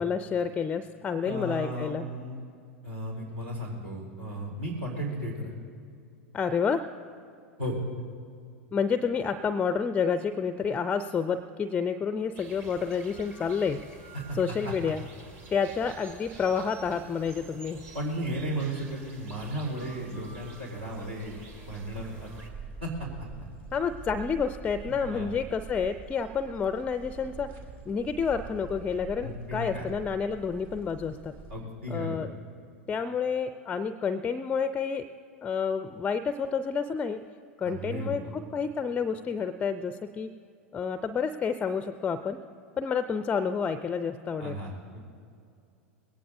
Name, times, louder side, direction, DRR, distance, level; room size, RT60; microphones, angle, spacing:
voice 1, 0.0-2.1 6.3-6.8 8.7-13.8 14.3-15.0 15.5-17.8 23.7-27.5 27.9-31.4 31.9-32.3 32.9-35.0 35.4-37.2 37.6-40.3 40.7-42.4 42.8-44.6, left 6 dB, 20° left, 11 dB, 0.5 m, -29 dB
voice 2, 1.2-2.4 2.8-5.5 7.6-7.8 14.1-14.4 14.6-14.7 17.9-21.4 21.6-22.3 22.8-23.3 24.8-25.3 29.2-29.9 31.5-32.2 37.6-38.1 44.4-45.0, right 1 dB, 70° right, -2 dB, 3.9 m, -35 dB
sound 1, 12.3-22.5, right 3 dB, 35° right, 2.1 m, -49 dB
sound 2, 20.2-31.6, right 5 dB, 50° right, 1.9 m, -45 dB
21.0 x 17.5 x 2.7 m, 2.5 s
figure-of-eight pair, 85°, 7 cm